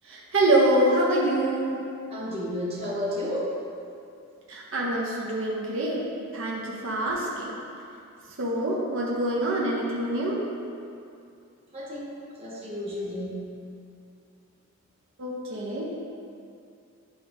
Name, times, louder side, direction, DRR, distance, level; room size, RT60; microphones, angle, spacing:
voice 1, 0.1-1.8 4.5-6.0 6.3-7.5 8.4-10.4 15.2-15.9, right 1 dB, 60° right, -4 dB, 0.8 m, -25 dB
voice 2, 2.1-3.5 11.7-13.5, left 1 dB, 25° right, -7 dB, 1.2 m, -32 dB
8.8 x 3.8 x 3.5 m, 2.5 s
head